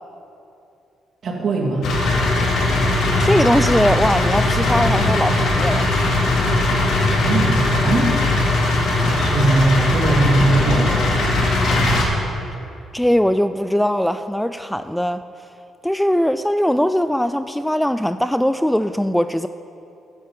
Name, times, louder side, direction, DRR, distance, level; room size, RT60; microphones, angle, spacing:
voice 1, 1.2-1.8 7.2-8.2 9.0-11.3, right 2 dB, 55° right, -1 dB, 2.4 m, -20 dB
sound 1, 1.8-12.0, left 2 dB, 75° left, 2.4 m, -19 dB
voice 2, 3.2-6.0 12.9-15.2 15.8-19.5, equal, 5° left, 11 dB, 0.3 m, -20 dB
9.9 x 7.4 x 9.0 m, 2.7 s
cardioid pair, 90°, 0 cm